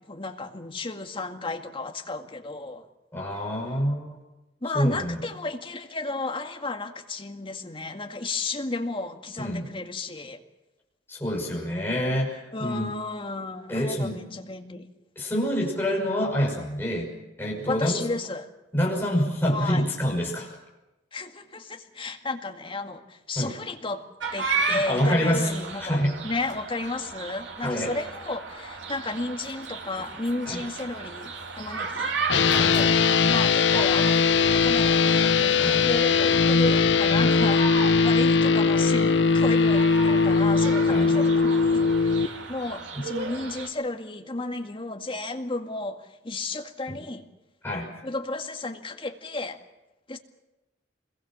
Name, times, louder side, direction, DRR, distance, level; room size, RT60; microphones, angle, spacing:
voice 1, 0.0-2.9 3.4-3.5 4.6-10.4 12.5-14.9 17.7-18.5 19.5-19.8 21.1-24.0 24.3-26.0 26.2-32.2 32.6-32.9 33.3-47.3 48.0-49.6 50.1-50.2, left 2 dB, 30° left, 4 dB, 2.0 m, -33 dB
voice 2, 3.1-4.1 4.7-5.2 9.4-9.7 11.1-13.0 13.7-14.2 15.2-17.1 17.4-18.0 18.7-20.5 23.4-23.6 24.7-25.5 25.8-26.1 27.6-27.9 30.5-30.6 32.5-32.8 35.6-35.8 37.2-37.4 40.9-41.1 42.9-43.0 46.9-47.0 47.6-47.9, equal, 10° left, -2 dB, 6.1 m, -27 dB
sound 1, 24.2-43.7, right 4 dB, 90° right, 3.0 m, -35 dB
sound 2, 32.3-42.3, left 5 dB, 75° left, 0.9 m, -20 dB
26.0 x 22.0 x 7.5 m, 1.0 s
head